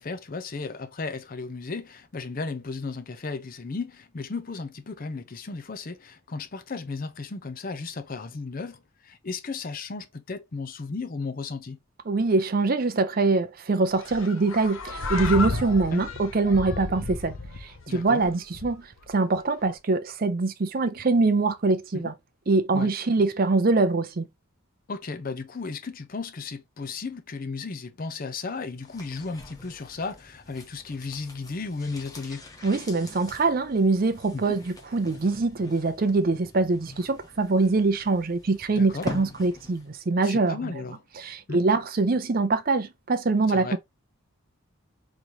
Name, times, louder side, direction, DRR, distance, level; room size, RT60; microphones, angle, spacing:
voice 1, 0.0-11.8 15.9-16.0 17.9-18.2 21.9-22.1 22.7-22.9 24.9-32.4 34.3-34.6 38.8-39.1 40.2-41.0 41.5-41.6 43.5-43.8, left 4 dB, 40° left, 0.5 m, -35 dB
voice 2, 12.1-17.3 17.6-22.1 22.5-24.3 32.6-40.7 41.2-43.8, right 3 dB, 40° right, 0.5 m, -24 dB
sound 1, 14.0-19.1, left 3 dB, 70° left, 0.9 m, -33 dB
sound 2, 28.8-40.0 40.2-40.3, left 2 dB, 15° left, 0.8 m, -44 dB
3.9 x 3.1 x 2.8 m
head